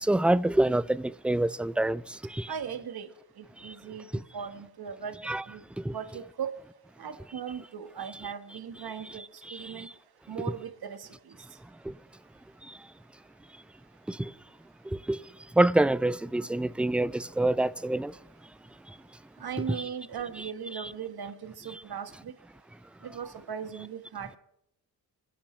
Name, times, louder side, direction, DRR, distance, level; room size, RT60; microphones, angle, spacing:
voice 1, 0.0-2.0 2.3-2.5 3.6-3.7 4.1-4.2 5.3-5.4 5.8-5.9 9.5-9.6 11.9-12.0 14.1-14.3 14.9-15.2 15.6-18.1, right 1 dB, 5° right, 0.4 m, -26 dB
voice 2, 2.5-3.1 3.4-4.1 4.3-5.2 5.5-5.6 5.9-6.5 7.0-9.2 9.5-9.9 10.3-11.1 19.4-22.3 23.0-24.4, right 7 dB, 60° right, 1.5 m, -38 dB
26.0 x 10.0 x 3.2 m
supercardioid pair, 50°, 42 cm